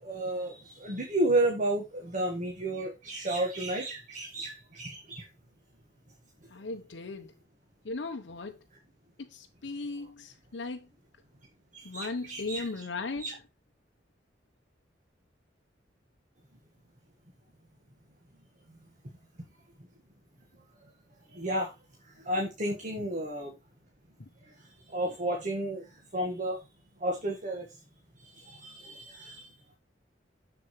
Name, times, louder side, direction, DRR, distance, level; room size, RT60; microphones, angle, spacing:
voice 1, 0.0-5.2 11.9-12.6 13.2-13.3 21.3-21.7 22.2-23.5 24.9-25.8 26.1-26.6 27.0-27.7 28.3-29.5, right 1 dB, 45° right, 1.4 m, -32 dB
voice 2, 6.5-7.4 7.8-8.6 9.2-10.9 11.8-13.3 24.2-24.3, left 3 dB, 75° left, 0.8 m, -37 dB
7.0 x 6.9 x 3.1 m
head